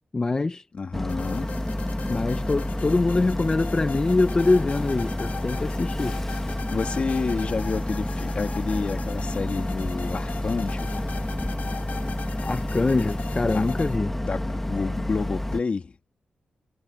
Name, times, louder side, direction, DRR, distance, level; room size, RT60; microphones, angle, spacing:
voice 1, 0.1-0.7 2.1-6.2 12.4-14.2, left 3 dB, 25° left, 0.8 m, -24 dB
voice 2, 0.7-1.5 6.7-10.9 13.5-13.6 14.2-15.9, left 4 dB, 40° left, 2.2 m, -29 dB
Boat Water vehicle, 0.9-15.6, left 1 dB, 10° left, 1.4 m, -29 dB
sound 1, 1.1-14.0, left 6 dB, 60° left, 4.5 m, -41 dB
wide cardioid pair, 140°, 3 cm